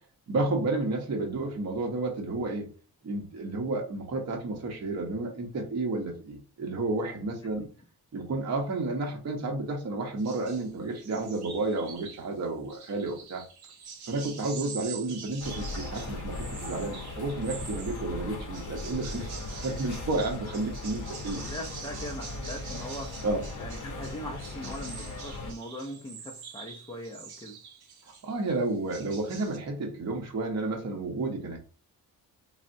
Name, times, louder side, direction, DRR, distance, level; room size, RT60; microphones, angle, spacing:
voice 1, 0.3-2.7 3.0-7.6 8.1-13.4 14.1-21.4 23.2-23.4 28.0-31.6, right 2 dB, 45° right, 0.7 m, -31 dB
sound 1, 10.2-10.7 11.0-12.3 12.7-18.1 18.5-28.3 28.7-29.6, right 5 dB, 80° right, 0.7 m, -45 dB
sound 2, 15.4-25.5, left 2 dB, 55° left, 0.6 m, -38 dB
voice 2, 21.3-23.2 23.6-27.6, equal, 15° left, 0.4 m, -41 dB
3.3 x 2.1 x 2.5 m
cardioid pair, 100°, 38 cm